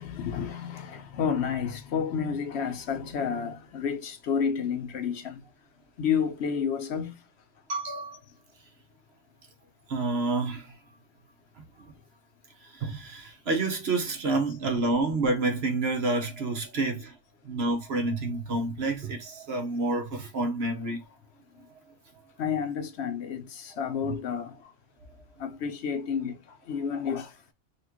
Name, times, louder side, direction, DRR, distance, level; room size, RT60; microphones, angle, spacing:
voice 1, 0.0-5.4 6.0-7.2 21.6-21.7 22.4-24.7 25.4-27.5, left 7 dB, 70° left, 0.9 m, -30 dB
voice 2, 7.7-8.2 9.9-10.7 11.6-11.9 12.6-17.2 17.4-21.0, right 2 dB, 60° right, 1.2 m, -29 dB
4.2 x 2.5 x 2.9 m
omnidirectional pair, 1.2 m